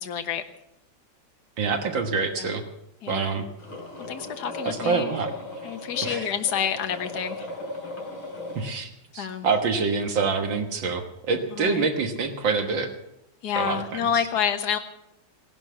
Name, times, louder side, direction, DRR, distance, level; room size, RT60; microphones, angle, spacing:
voice 1, 0.0-0.4 2.4-2.5 3.0-3.3 4.1-5.1 5.6-7.5 9.2-9.5 11.6-11.9 13.4-14.8, left 8 dB, 55° left, 7 dB, 1.6 m, -28 dB
voice 2, 1.6-2.6 3.1-3.5 4.7-5.3 6.0-6.3 8.6-12.9 13.6-14.2, right 4 dB, 70° right, 5 dB, 2.1 m, -26 dB
sound 1, 3.6-8.7, left 2 dB, 85° left, 4.3 m, -37 dB
17.0 x 11.5 x 6.9 m, 0.86 s
omnidirectional pair, 2.2 m